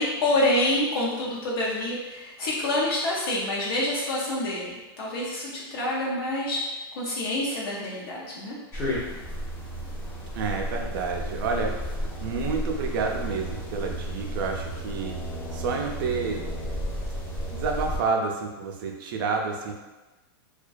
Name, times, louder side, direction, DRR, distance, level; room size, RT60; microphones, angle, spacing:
voice 1, 0.0-6.6 7.0-8.6, left 1 dB, 65° left, -5 dB, 0.5 m, -27 dB
sound 1, 8.7-18.0, equal, 15° left, 0.4 m, -33 dB
voice 2, 10.3-11.8 12.2-15.2 15.5-16.4 17.5-19.7, right 4 dB, 55° right, 1 dB, 0.4 m, -29 dB
2.3 x 2.2 x 2.5 m, 1.1 s
supercardioid pair, 160°, 13 cm